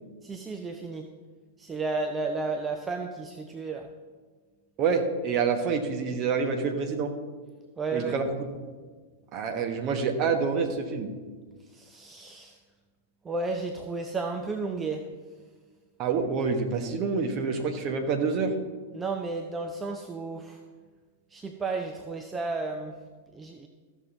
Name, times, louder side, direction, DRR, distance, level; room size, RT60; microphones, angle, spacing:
voice 1, 0.2-1.1 1.6-3.9 7.8-8.2 11.6-12.6 13.2-15.1 18.9-20.6 21.3-23.0 23.3-23.7, right 3 dB, 15° right, 4 dB, 0.6 m, -33 dB
voice 2, 4.8-7.1 7.9-8.6 9.3-11.1 16.0-18.6, right 5 dB, 35° right, 5 dB, 1.2 m, -27 dB
14.5 x 6.4 x 4.0 m, 1.5 s
figure-of-eight pair, 95°, 0 cm